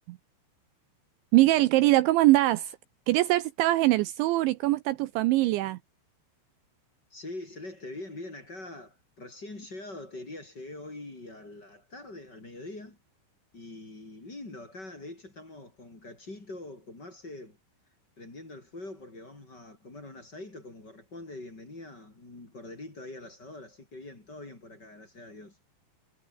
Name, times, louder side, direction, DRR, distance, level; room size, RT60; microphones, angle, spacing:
voice 1, 1.3-2.7 3.1-5.8, right 17 dB, 80° right, 2.8 m, -22 dB
voice 2, 7.1-13.0 13.5-17.6 18.2-25.6, left 2 dB, 20° left, 4.5 m, -44 dB
omnidirectional pair, 5.8 m